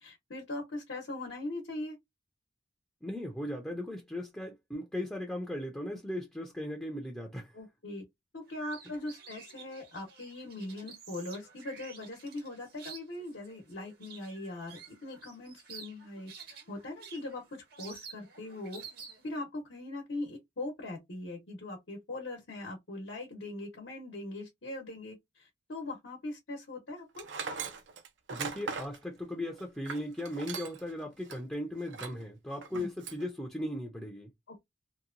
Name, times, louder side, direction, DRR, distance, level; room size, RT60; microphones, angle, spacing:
voice 1, 0.0-2.0 7.5-8.0 8.3-18.8 19.2-27.3 32.7-32.9 34.5-34.6, left 2 dB, 75° left, 0.9 m, -41 dB
voice 2, 3.0-7.6 28.3-34.3, left 1 dB, 5° left, 0.5 m, -37 dB
sound 1, 8.5-19.4, right 6 dB, 60° right, 0.9 m, -51 dB
Tools, 27.2-30.9 31.3-31.4 31.9-32.2 32.6-33.3, right 5 dB, 75° right, 0.5 m, -40 dB
2.8 x 2.2 x 2.5 m
head